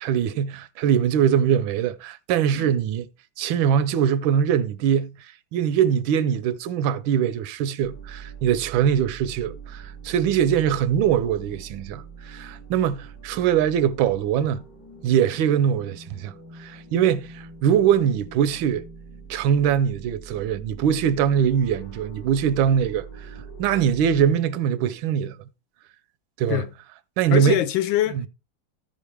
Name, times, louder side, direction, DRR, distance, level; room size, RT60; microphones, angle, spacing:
voice 1, 0.0-3.1 3.4-5.1 5.5-14.6 15.0-16.3 16.6-18.8 19.3-23.3 23.6-25.4 26.4-26.6 27.2-27.6, right 8 dB, 90° right, 1.4 m, -22 dB
sound 1, 7.8-24.3, right 5 dB, 55° left, 2.0 m, -43 dB
voice 2, 27.3-28.3, left 13 dB, 85° left, 1.4 m, -24 dB
14.5 x 5.3 x 3.3 m
omnidirectional pair, 2.1 m